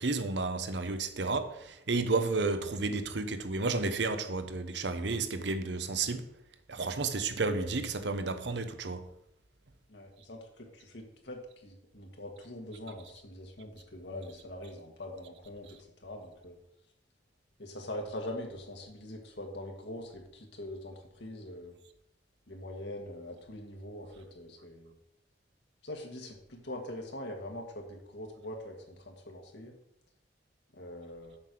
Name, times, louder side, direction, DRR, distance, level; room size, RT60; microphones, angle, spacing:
voice 1, 0.0-6.3 6.7-9.0, right 3 dB, 70° right, 0.9 m, -32 dB
voice 2, 9.9-16.6 17.6-21.8 22.5-24.9 25.8-29.7 30.7-31.4, left 1 dB, 70° left, 1.5 m, -43 dB
7.4 x 6.7 x 6.0 m
head